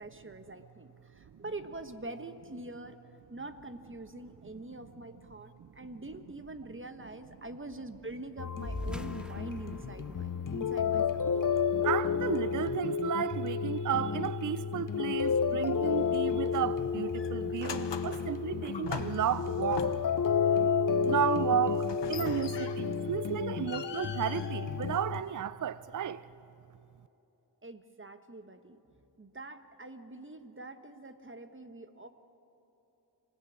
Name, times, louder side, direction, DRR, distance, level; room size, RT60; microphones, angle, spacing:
voice 1, 0.0-3.0 3.3-11.2 22.1-22.4 27.6-28.8 29.2-32.1, right 2 dB, 25° right, 1.3 m, -45 dB
sound 1, 8.4-25.2, left 6 dB, 45° left, 0.7 m, -31 dB
sound 2, 8.6-13.5, equal, ahead, 1.5 m, -45 dB
voice 2, 11.8-19.9 21.0-26.2, right 9 dB, 45° right, 0.5 m, -33 dB
sound 3, 16.5-16.8 17.1-20.3 21.8-23.0 23.4-25.3, left 7 dB, 70° left, 1.1 m, -42 dB
26.5 x 16.0 x 8.5 m
cardioid pair, 55°, 45 cm